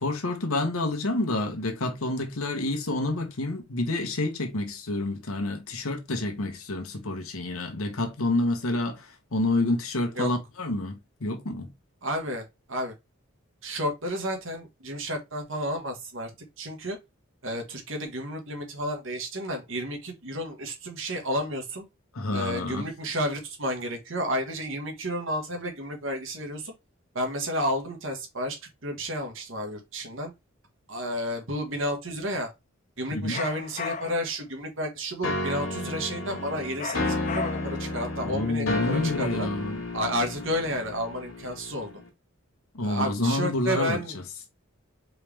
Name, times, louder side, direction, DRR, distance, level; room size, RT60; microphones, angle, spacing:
voice 1, 0.0-11.7 22.1-22.9 33.1-33.4 38.2-39.8 42.7-44.0, left 2 dB, 85° left, 1.1 m, -28 dB
voice 2, 12.0-12.9 13.6-16.3 16.6-17.0 17.4-21.8 22.3-26.7 27.1-30.3 30.9-32.5 33.0-39.5 39.9-42.0 42.8-44.2, equal, 65° right, 1.5 m, -31 dB
sound 1, 33.3-34.3 36.8-37.9, left 5 dB, 35° left, 0.4 m, -35 dB
sound 2, 35.2-42.1, left 2 dB, 70° left, 1.6 m, -32 dB
4.6 x 3.2 x 3.4 m
head